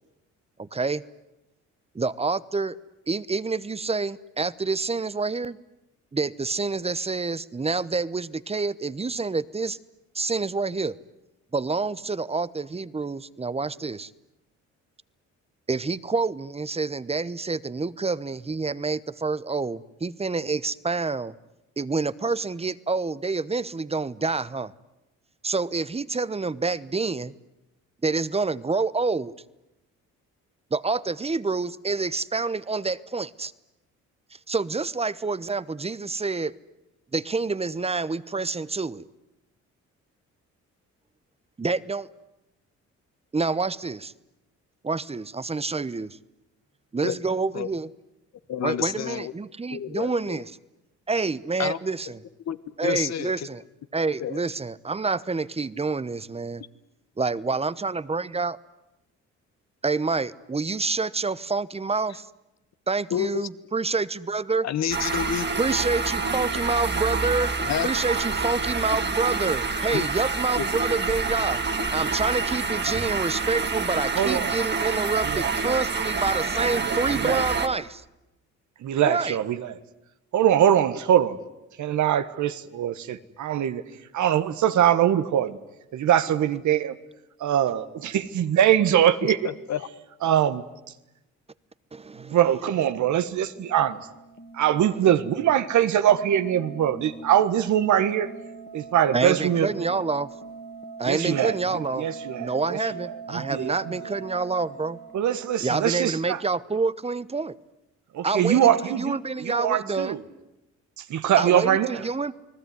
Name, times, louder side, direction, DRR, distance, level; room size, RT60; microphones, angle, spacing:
voice 1, 0.6-1.0 1.9-2.8 3.1-5.6 6.1-9.8 10.1-11.0 11.5-14.1 15.7-21.3 21.8-24.7 25.4-27.3 28.0-29.3 30.7-33.5 34.3-36.5 37.1-39.1 41.6-42.1 43.3-44.1 44.8-46.2 46.9-47.9 48.6-50.4 51.1-52.2 52.8-53.6 53.9-56.6 57.2-58.6 59.8-62.3 62.9-64.7 65.6-67.5 67.8-71.6 71.9-78.0 79.0-79.4 91.9-92.4 99.1-100.3 101.0-102.1 102.4-105.0 105.6-107.6 108.2-110.2 111.4-112.3, right 4 dB, 20° right, 18 dB, 1.0 m, -27 dB
voice 2, 48.5-49.3 49.7-50.4 51.6-51.8 52.5-53.5 54.2-54.4 63.1-63.5 64.6-65.5 67.6-67.9 69.9-70.1 70.6-70.7 89.4-89.9, left 9 dB, 60° left, 13 dB, 1.4 m, -29 dB
sound 1, 64.9-77.7, right 4 dB, 35° right, 2.2 m, -27 dB
voice 3, 74.1-74.6 75.2-75.8 76.8-77.4 78.8-79.7 80.3-81.4 81.8-83.8 84.1-85.6 85.9-87.0 87.4-89.4 90.2-90.6 92.3-94.0 94.5-98.3 98.7-99.7 101.0-102.8 103.3-103.7 105.1-106.4 108.1-110.2 111.0-112.0, right 10 dB, 70° right, 12 dB, 1.5 m, -22 dB
sound 2, 93.5-105.6, right 4 dB, 35° left, 2.4 m, -42 dB
29.5 x 20.0 x 9.6 m, 0.94 s
cardioid pair, 90°, 30 cm